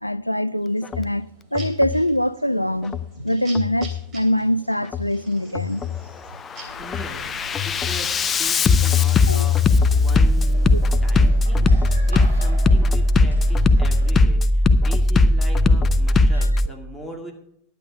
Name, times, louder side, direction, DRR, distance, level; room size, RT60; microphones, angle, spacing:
voice 1, 0.0-1.3 1.5-5.8 9.3-9.4 10.7-10.8 16.3-16.5, equal, 90° left, 0.3 m, -23 dB
sound 1, 0.6-7.5, right 3 dB, 30° right, 3.0 m, -46 dB
Bass drum, 0.8-1.1 1.5-2.0 2.8-3.1 3.5-4.0 4.8-5.1 5.5-6.0 6.5-16.7, left 2 dB, 25° left, 0.5 m, -18 dB
sound 2, 6.6-14.1, equal, 80° right, 4.3 m, -39 dB
voice 2, 6.8-9.6 9.9-17.3, equal, ahead, 2.2 m, -40 dB
11.0 x 8.4 x 5.2 m
figure-of-eight pair, 90°, 0 cm